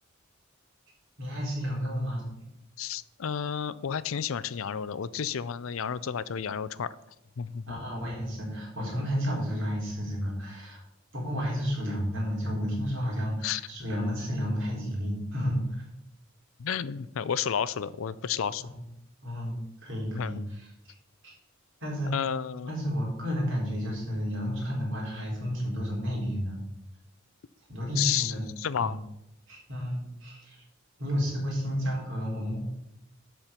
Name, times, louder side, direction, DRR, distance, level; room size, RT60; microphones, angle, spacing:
voice 1, 1.2-2.4 7.7-10.8 11.1-15.8 18.6-18.7 19.2-20.7 21.8-22.1 22.7-26.6 27.7-28.4 28.8-29.0 29.5-30.6 31.0-32.6, equal, 60° right, -3 dB, 3.8 m, -31 dB
voice 2, 2.8-6.9 7.4-7.8 13.4-13.6 16.6-18.6 20.1-20.3 22.1-22.7 28.0-29.0, left 8 dB, 70° left, 17 dB, 0.5 m, -31 dB
12.0 x 4.5 x 5.7 m, 0.84 s
head